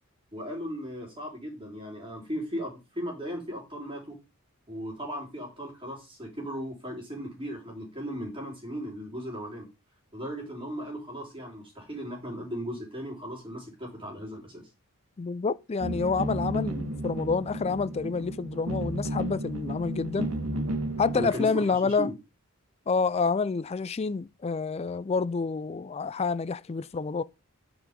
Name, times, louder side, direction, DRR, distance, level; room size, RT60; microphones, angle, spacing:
voice 1, 0.3-4.2 4.7-9.7 10.1-14.6 21.1-22.1, equal, 25° right, 3.9 m, -37 dB
voice 2, 15.2-20.3 21.0-22.1 22.9-27.2, left 4 dB, 30° left, 0.3 m, -28 dB
sound 1, 15.8-21.3, right 1 dB, 75° right, 1.8 m, -33 dB
9.8 x 4.9 x 5.2 m
head